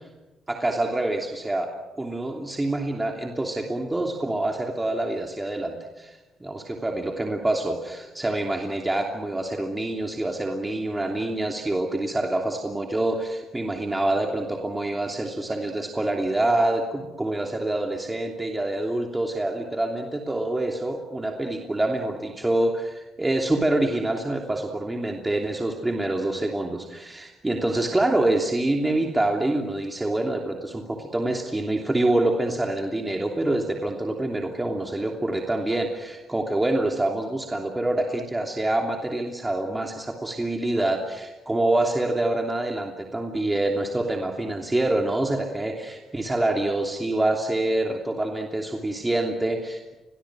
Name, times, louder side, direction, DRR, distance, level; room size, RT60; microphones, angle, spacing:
voice 1, 0.5-1.7 2.0-6.1 6.4-49.9, right 1 dB, 15° right, 1 dB, 3.0 m, -26 dB
29.5 x 23.5 x 6.3 m, 1.1 s
cardioid pair, 90°, 0 cm